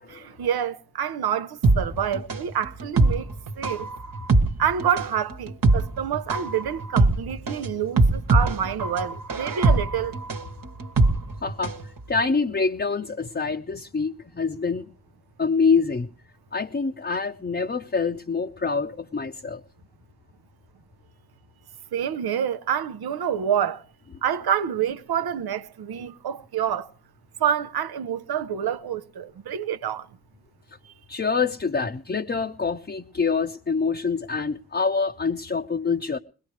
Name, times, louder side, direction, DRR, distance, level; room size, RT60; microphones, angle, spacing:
voice 1, 0.1-3.3 3.6-3.9 4.6-10.1 21.9-23.8 24.2-26.9 27.4-30.1 30.8-30.9, right 9 dB, 80° right, 0.7 m, -27 dB
sound 1, 1.6-11.9 12.1-12.2, right 2 dB, 65° right, 1.3 m, -22 dB
voice 2, 11.4-11.8 12.1-14.9 15.4-16.1 16.5-19.6 31.1-36.2, left 5 dB, 30° left, 0.7 m, -26 dB
21.0 x 18.0 x 3.2 m
cardioid pair, 45°, 37 cm